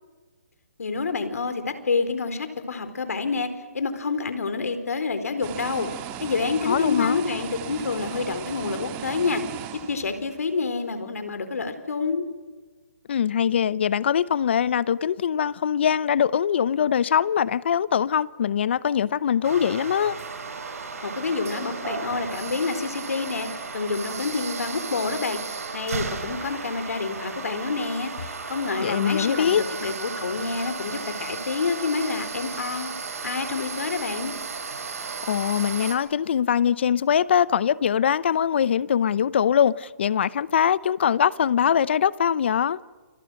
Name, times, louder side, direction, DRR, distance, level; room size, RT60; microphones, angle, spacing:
voice 1, 0.8-3.5 3.7-5.9 6.2-9.4 9.7-12.3 21.0-23.5 23.7-25.4 25.7-32.9 33.2-34.3, left 4 dB, 80° left, 4.5 m, -28 dB
sound 1, 5.4-10.6, right 11 dB, 20° right, 2.0 m, -36 dB
voice 2, 6.7-7.2 13.1-20.2 28.8-29.6 35.3-42.8, left 8 dB, 45° left, 0.7 m, -22 dB
sound 2, 19.4-36.0, right 5 dB, 75° right, 5.5 m, -34 dB
29.5 x 28.5 x 6.5 m
hypercardioid pair, 165°, 8 cm